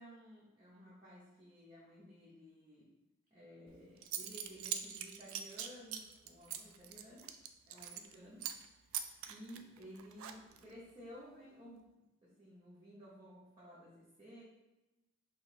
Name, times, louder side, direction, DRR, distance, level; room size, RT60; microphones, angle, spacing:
voice 1, 0.0-2.9 3.3-7.3 7.7-8.5 8.8-8.9 9.3-14.4, equal, 25° right, -8 dB, 0.7 m, -55 dB
Zipper (clothing) / Coin (dropping), 3.7-3.8 4.0-8.1 8.4-8.7 8.9-10.7, right 9 dB, 90° right, 0.3 m, -43 dB
3.1 x 2.8 x 4.0 m, 0.98 s
head